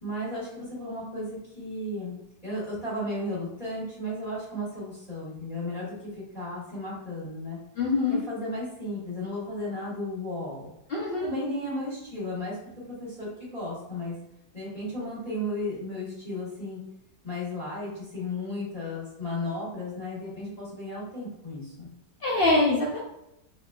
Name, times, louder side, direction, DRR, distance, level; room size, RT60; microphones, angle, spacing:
voice 1, 0.0-2.1 2.4-7.6 8.1-10.7 11.2-12.6 12.9-14.1 14.5-16.8 17.2-21.9, left 1 dB, 25° left, -7 dB, 1.4 m, -34 dB
voice 2, 7.8-8.2 10.9-11.3 22.2-23.0, left 2 dB, 80° left, -5 dB, 0.5 m, -24 dB
3.9 x 3.5 x 2.3 m, 0.86 s
omnidirectional pair, 1.8 m